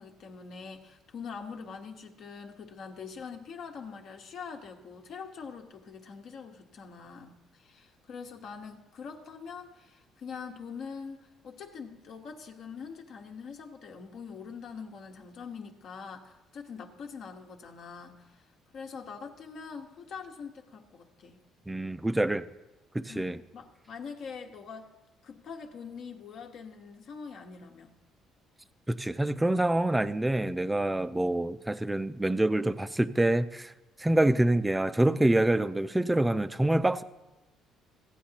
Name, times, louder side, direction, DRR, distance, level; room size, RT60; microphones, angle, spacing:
voice 1, 0.0-18.5 18.7-21.4 23.1-24.9 25.2-28.0, left 5 dB, 60° left, 1.2 m, -44 dB
voice 2, 21.7-22.5 22.9-23.4 28.9-33.7 34.0-37.0, right 1 dB, 10° right, 0.4 m, -26 dB
16.0 x 8.9 x 2.8 m
cardioid pair, 115°, 0 cm